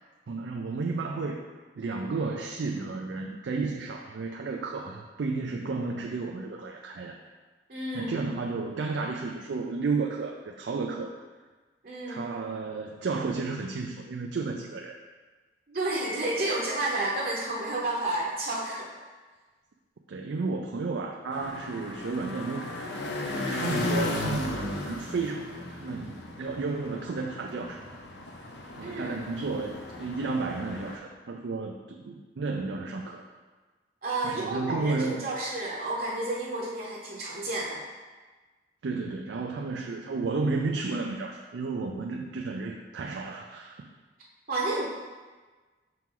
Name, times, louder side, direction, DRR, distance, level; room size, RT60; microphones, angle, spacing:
voice 1, 0.3-1.4 1.8-7.2 7.9-11.1 12.1-15.0 20.1-22.9 23.2-27.8 28.8-33.2 34.2-35.2 38.8-43.9, right 3 dB, 85° right, 1 dB, 0.4 m, -32 dB
voice 2, 7.7-8.2 11.8-12.3 15.7-18.9 28.8-29.1 34.0-37.8 44.5-44.9, right 2 dB, 55° right, -5 dB, 0.9 m, -31 dB
sound 1, 21.3-31.0, left 2 dB, 75° left, 0.7 m, -36 dB
5.9 x 4.4 x 3.8 m, 1.3 s
head